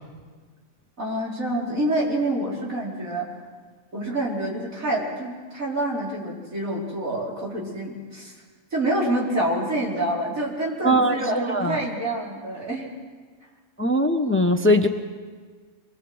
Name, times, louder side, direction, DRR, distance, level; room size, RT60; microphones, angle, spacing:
voice 1, 1.0-3.3 3.9-8.4 8.7-12.9, right 1 dB, 85° right, -4 dB, 5.4 m, -27 dB
voice 2, 10.8-11.8 13.8-14.9, equal, 10° left, 6 dB, 1.0 m, -20 dB
25.0 x 22.0 x 8.0 m, 1.5 s
omnidirectional pair, 1.4 m